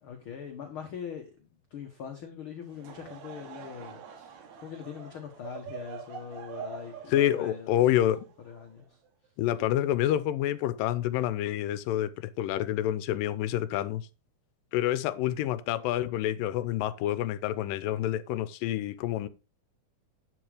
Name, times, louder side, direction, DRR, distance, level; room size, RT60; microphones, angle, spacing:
voice 1, 0.0-7.7 8.4-9.0, left 7 dB, 55° left, 1.5 m, -42 dB
Laughter / Crowd, 2.6-9.1, right 7 dB, 65° right, 2.4 m, -45 dB
voice 2, 7.1-8.3 9.4-12.1 12.4-14.0 14.7-19.3, left 12 dB, 85° left, 2.4 m, -28 dB
11.0 x 5.2 x 4.9 m
omnidirectional pair, 3.9 m